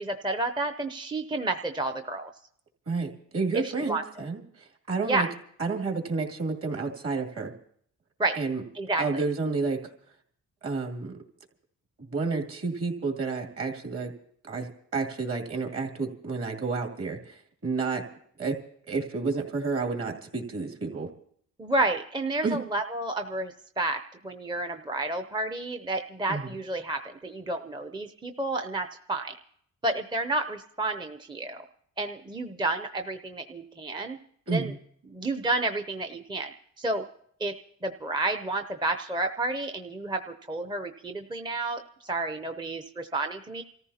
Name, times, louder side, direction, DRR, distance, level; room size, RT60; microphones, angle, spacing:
voice 1, 0.0-2.3 3.5-4.0 5.1-5.3 8.2-8.4 8.7-9.2 21.6-29.4 29.8-31.6 32.0-34.2 34.5-34.7 35.1-36.5 36.8-37.0 37.4-37.5 37.8-43.6, right 2 dB, 15° right, 7 dB, 0.6 m, -30 dB
voice 2, 2.9-5.3 5.6-7.5 8.4-8.6 9.0-9.8 10.6-11.2 12.1-14.1 14.5-18.0 18.4-18.6 18.9-21.1 22.4-22.6 26.3-26.5 34.5-34.8, right 4 dB, 50° right, 3 dB, 2.6 m, -30 dB
28.0 x 14.5 x 2.8 m, 0.64 s
cardioid pair, 90°, 30 cm